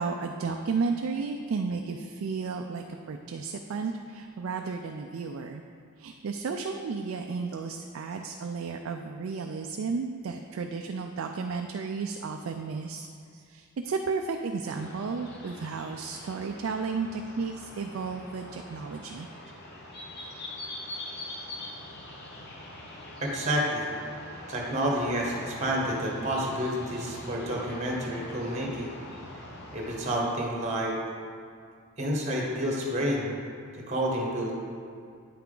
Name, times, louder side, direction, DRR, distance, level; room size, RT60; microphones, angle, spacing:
voice 1, 0.0-5.6 6.0-13.1 13.5-19.3 20.2-20.3, right 4 dB, 65° right, 4 dB, 0.4 m, -33 dB
sound 1, 14.7-30.2, left 1 dB, 50° left, 1.0 m, -43 dB
voice 2, 23.2-23.9 24.5-29.0 29.7-31.0 32.0-33.4 33.9-34.5, equal, 30° right, -2 dB, 1.3 m, -29 dB
8.6 x 5.8 x 3.8 m, 2.3 s
head